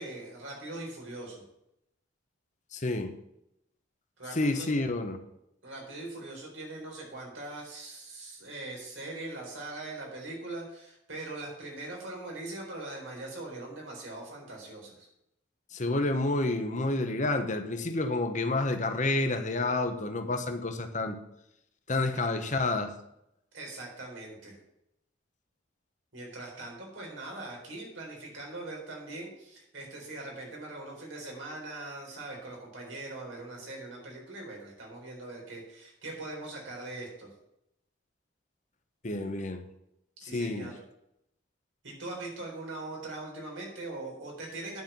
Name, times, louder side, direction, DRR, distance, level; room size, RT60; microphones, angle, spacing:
voice 1, 0.0-1.4 4.2-4.7 5.6-15.1 23.5-24.6 26.1-37.3 40.2-40.7 41.8-44.8, right 2 dB, 85° right, -1 dB, 4.1 m, -41 dB
voice 2, 2.7-3.1 4.3-5.2 15.7-21.2 21.9-22.9 39.0-39.6 40.2-40.7, left 2 dB, 40° left, 7 dB, 1.0 m, -29 dB
9.5 x 5.7 x 7.3 m, 0.82 s
head